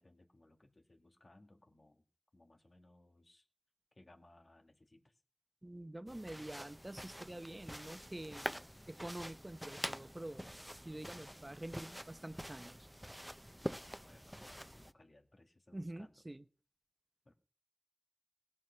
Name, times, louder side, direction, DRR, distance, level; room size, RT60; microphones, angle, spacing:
voice 1, 0.0-2.0 2.3-3.5 3.9-5.2 14.0-16.2 17.3-17.4, left 2 dB, 75° left, 5 dB, 2.0 m, -64 dB
voice 2, 5.6-8.6 8.9-10.5 10.8-12.9 15.7-16.4, right 1 dB, 35° right, 11 dB, 0.8 m, -47 dB
sound 1, 6.1-14.9, equal, 5° right, 0.7 m, -46 dB
18.5 x 7.6 x 5.8 m, 0.40 s
wide cardioid pair, 45°, 0 cm